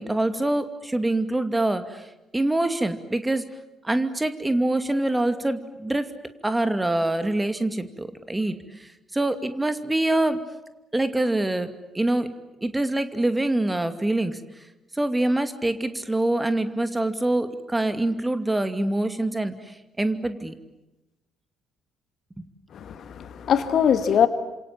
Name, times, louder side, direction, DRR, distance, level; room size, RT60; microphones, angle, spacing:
voice 1, 0.0-2.1 2.3-3.5 3.8-6.1 6.4-10.4 10.9-11.7 11.9-12.3 12.6-14.4 14.9-20.5 22.4-22.5, right 1 dB, 15° right, 9 dB, 2.5 m, -25 dB
voice 2, 22.7-24.3, left 8 dB, 55° left, 11 dB, 1.8 m, -22 dB
28.5 x 27.0 x 7.6 m, 0.99 s
figure-of-eight pair, 45°, 0 cm